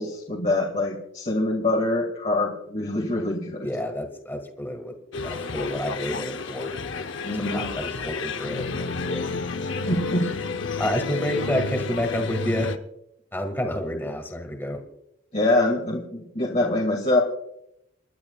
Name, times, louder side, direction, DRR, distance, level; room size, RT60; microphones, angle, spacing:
voice 1, 0.0-3.7 7.2-7.7 9.6-10.3 15.3-17.2, left 2 dB, 35° left, -2 dB, 2.2 m, -24 dB
voice 2, 3.6-4.9 5.2-6.7 7.4-9.2 10.8-12.7 13.3-14.8, left 1 dB, 10° left, 4 dB, 1.9 m, -29 dB
sound 1, 5.1-12.8, left 3 dB, 70° left, 0.8 m, -30 dB
29.5 x 12.0 x 2.4 m, 0.79 s
head